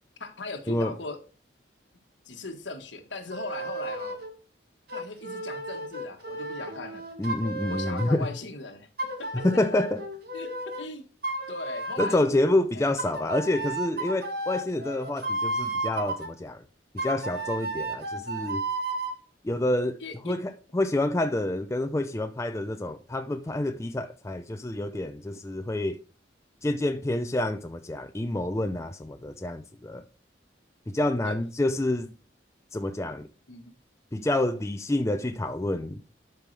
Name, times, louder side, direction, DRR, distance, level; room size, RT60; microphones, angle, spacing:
voice 1, 0.2-1.2 2.2-4.2 4.9-7.1 7.7-8.9 9.2-9.3 10.3-11.1 11.5-12.2 12.7-12.9 20.0-20.3 31.2-31.3 33.5-33.7, left 3 dB, 75° left, 1.5 m, -39 dB
sound 1, 3.3-4.3 4.9-8.3 9.0-10.9 11.2-12.3 13.0-16.3 17.0-19.2, right 2 dB, 55° right, 1.8 m, -33 dB
voice 2, 7.2-8.3 9.3-10.0 12.0-16.6 16.9-18.6 19.4-20.0 20.2-26.0 26.6-30.0 30.9-32.1 32.7-33.3 34.1-36.0, left 1 dB, 15° left, 0.4 m, -28 dB
12.0 x 5.3 x 3.3 m
head